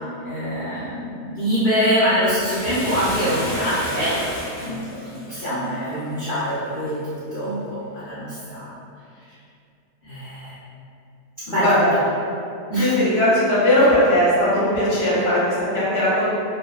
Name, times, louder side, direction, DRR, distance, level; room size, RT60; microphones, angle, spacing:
voice 1, 0.2-4.2 4.6-8.8 10.0-10.5 11.5-11.7 12.7-12.9, equal, 80° left, -14 dB, 0.4 m, -24 dB
Bathtub (filling or washing), 2.3-6.9 7.4-7.5, equal, 15° left, 0.8 m, -32 dB
voice 2, 11.6-11.9 12.8-16.2, left 1 dB, 50° left, -9 dB, 0.8 m, -18 dB
2.6 x 2.2 x 2.3 m, 2.5 s
omnidirectional pair, 1.8 m